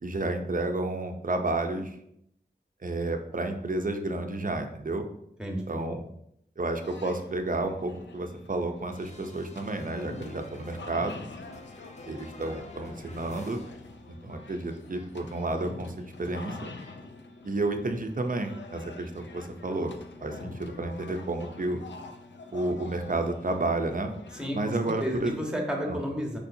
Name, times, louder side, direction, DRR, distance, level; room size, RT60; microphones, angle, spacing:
voice 1, 0.0-2.0 2.8-5.0 5.7-6.0 6.6-11.2 12.1-13.6 14.2-16.7 17.4-19.9 20.2-21.8 22.5-24.1 24.5-25.3 25.9-26.0, right 2 dB, 50° right, 5 dB, 0.6 m, -31 dB
voice 2, 5.4-5.9 24.3-24.7 25.0-26.4, equal, 5° right, 0 dB, 1.1 m, -32 dB
sound 1, 6.8-25.3, left 3 dB, 80° left, 0.5 m, -46 dB
sound 2, 8.9-14.4 14.6-17.0, left 2 dB, 40° left, 0.7 m, -50 dB
4.6 x 4.2 x 2.7 m, 0.74 s
wide cardioid pair, 50°, 18 cm